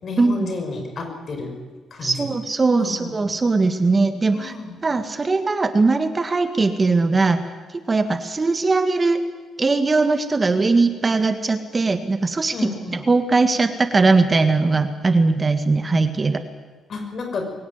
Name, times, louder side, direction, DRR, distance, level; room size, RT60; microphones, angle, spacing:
voice 1, 0.0-1.5 1.9-2.3 2.8-3.3 4.3-4.8 12.5-13.0 16.9-17.4, left 3 dB, 50° left, 5 dB, 5.6 m, -31 dB
voice 2, 2.0-4.5 4.8-7.4 7.9-9.2 9.6-12.5 12.9-16.4, right 3 dB, 30° right, 9 dB, 1.6 m, -20 dB
23.0 x 16.5 x 9.5 m, 1.4 s
cardioid pair, 90°, 0 cm